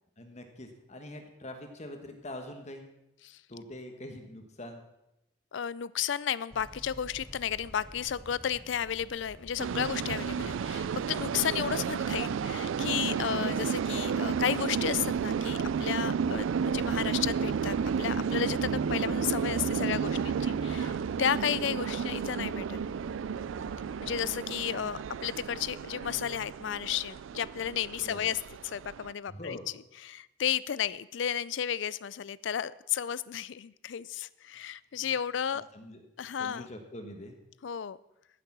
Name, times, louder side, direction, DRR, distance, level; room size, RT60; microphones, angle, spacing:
voice 1, 0.2-2.9 3.5-4.8 28.0-28.3 29.3-29.7 35.7-37.4, left 1 dB, 35° left, 5 dB, 1.3 m, -44 dB
voice 2, 5.5-22.8 24.0-29.6 30.0-35.6 36.2-36.7 37.6-38.0, left 9 dB, 65° left, 20 dB, 0.4 m, -33 dB
sound 1, 6.5-24.2, equal, 5° left, 0.7 m, -52 dB
sound 2, 9.1-15.1, right 2 dB, 50° right, 3.1 m, -58 dB
sound 3, 9.6-29.1, right 6 dB, 80° right, 0.4 m, -32 dB
14.5 x 6.7 x 6.1 m, 0.90 s
head